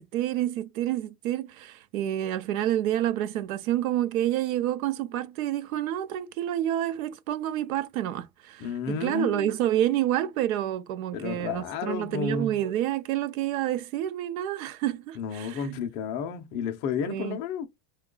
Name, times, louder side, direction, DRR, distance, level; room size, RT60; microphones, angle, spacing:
voice 1, 0.0-15.8 17.1-17.4, right 12 dB, 90° right, 0.6 m, -28 dB
voice 2, 8.6-9.5 11.1-12.6 15.2-17.7, left 6 dB, 30° left, 0.3 m, -32 dB
3.0 x 2.2 x 3.7 m
supercardioid pair, 145°, 41 cm